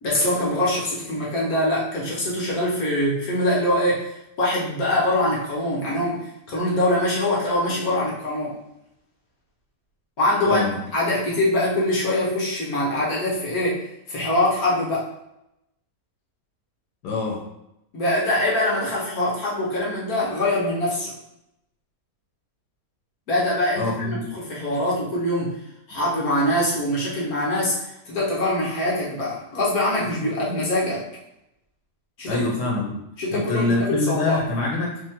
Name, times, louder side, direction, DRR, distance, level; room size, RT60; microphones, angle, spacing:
voice 1, 0.0-8.6 10.2-10.6 10.9-13.8 14.1-15.1 17.9-21.1 23.3-25.6 25.9-27.8 28.1-31.1 32.2-32.4 33.2-34.4, left 1 dB, 65° left, -5 dB, 1.5 m, -23 dB
voice 2, 10.4-10.9 17.0-17.5 23.8-24.3 32.3-33.0 33.3-35.0, left 3 dB, 80° left, -2 dB, 1.5 m, -25 dB
5.1 x 2.9 x 3.6 m, 0.83 s
omnidirectional pair, 1.8 m